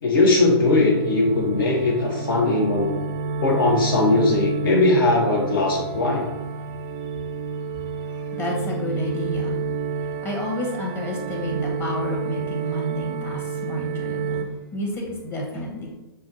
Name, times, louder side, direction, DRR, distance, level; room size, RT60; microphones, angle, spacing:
voice 1, 0.0-3.0 3.4-6.3, left 2 dB, 60° left, -2 dB, 0.9 m, -19 dB
sound 1, 0.6-14.4, right 5 dB, 25° right, 0.4 m, -30 dB
voice 2, 8.1-9.6 10.0-15.9, left 1 dB, 15° left, -1 dB, 0.9 m, -30 dB
6.0 x 2.3 x 2.7 m, 1.0 s
figure-of-eight pair, 120°, 13 cm